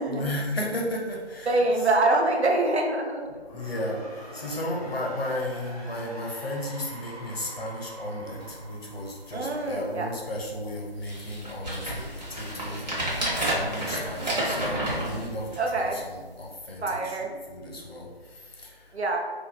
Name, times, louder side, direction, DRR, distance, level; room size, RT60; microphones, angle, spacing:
voice 1, 0.1-1.6 3.5-18.9, left 1 dB, 65° left, -1 dB, 0.8 m, -34 dB
voice 2, 1.5-3.3 9.3-10.1 15.6-16.0 16.8-17.3 18.9-19.2, right 2 dB, 90° right, 2 dB, 0.6 m, -25 dB
sound 1, 3.2-10.1, right 1 dB, 35° left, 0.5 m, -45 dB
sound 2, 8.4-8.5 9.0-9.1 9.4-9.9 10.5-10.6 11.0-15.9 16.5-16.6, right 1 dB, 40° right, 0.8 m, -30 dB
2.5 x 2.3 x 3.1 m, 1.4 s
figure-of-eight pair, 160°, 32 cm